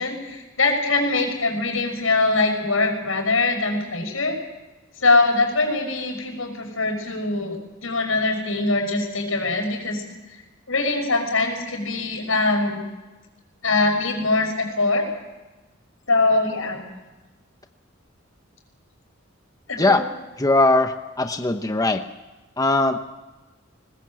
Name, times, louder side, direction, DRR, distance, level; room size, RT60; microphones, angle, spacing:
voice 1, 0.0-4.4 5.0-7.6 7.8-10.0 10.7-12.8 13.6-15.1 16.1-16.8 19.7-20.0, left 3 dB, 85° left, 3 dB, 6.0 m, -22 dB
voice 2, 20.4-22.0 22.6-23.0, left 2 dB, 20° left, 7 dB, 0.9 m, -20 dB
21.5 x 20.5 x 7.6 m, 1.1 s
head